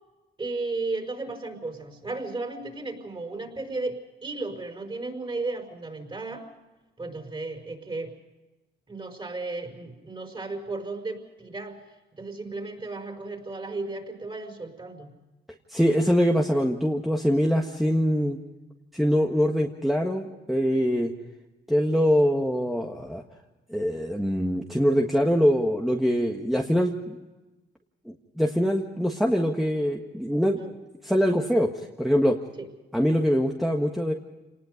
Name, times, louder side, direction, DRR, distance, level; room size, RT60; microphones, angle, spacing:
voice 1, 0.4-6.5 7.0-8.1 8.9-11.8 12.2-15.1 30.5-30.7 32.6-32.7, right 3 dB, 25° right, 4 dB, 5.1 m, -34 dB
voice 2, 15.7-18.4 18.9-21.1 21.7-23.2 23.7-27.2 28.0-30.6 31.0-31.7 32.0-32.4 32.9-34.1, equal, ahead, 0 dB, 1.7 m, -23 dB
27.5 x 19.5 x 5.2 m, 1.1 s
cardioid pair, 90°, 20 cm